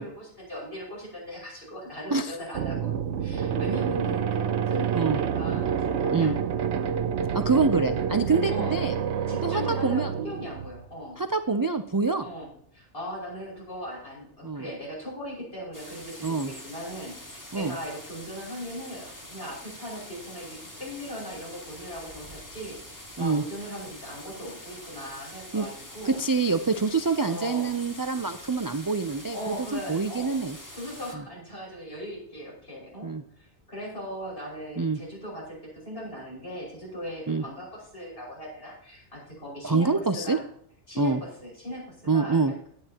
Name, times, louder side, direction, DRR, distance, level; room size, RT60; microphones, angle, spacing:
voice 1, 0.0-2.9 3.2-6.7 8.5-8.8 9.3-11.2 12.2-12.5 12.7-26.2 27.2-27.8 29.3-30.4 30.8-33.1 33.4-40.4 40.9-42.7, equal, 55° left, -4 dB, 5.9 m, -39 dB
sound 1, 2.5-10.8, right 8 dB, 75° right, 1.0 m, -28 dB
voice 2, 7.3-8.9 9.4-10.1 11.2-12.3 14.4-14.7 16.2-16.5 17.5-17.8 23.2-23.4 25.5-25.7 26.0-30.6 31.1-31.2 33.0-33.2 34.8-35.0 37.3-37.4 39.6-40.4 41.0-41.2 42.1-42.5, right 4 dB, 35° right, 8 dB, 0.3 m, -26 dB
sound 2, 15.7-31.2, left 1 dB, 15° left, 1.6 m, -45 dB
16.5 x 9.9 x 2.9 m, 0.65 s
omnidirectional pair, 1.2 m